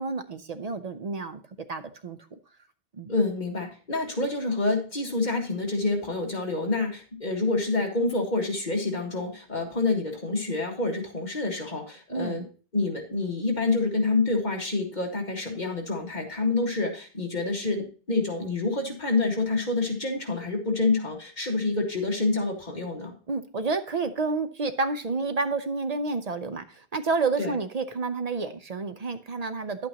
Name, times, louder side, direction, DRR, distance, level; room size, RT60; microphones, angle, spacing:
voice 1, 0.0-1.4 1.7-2.2 2.9-3.1 12.1-12.5 23.3-29.9, right 4 dB, 45° right, 9 dB, 0.6 m, -29 dB
voice 2, 3.1-12.5 12.7-23.1 27.4-27.5, left 3 dB, 45° left, 1 dB, 2.0 m, -27 dB
10.5 x 8.4 x 2.9 m, 0.37 s
omnidirectional pair, 1.0 m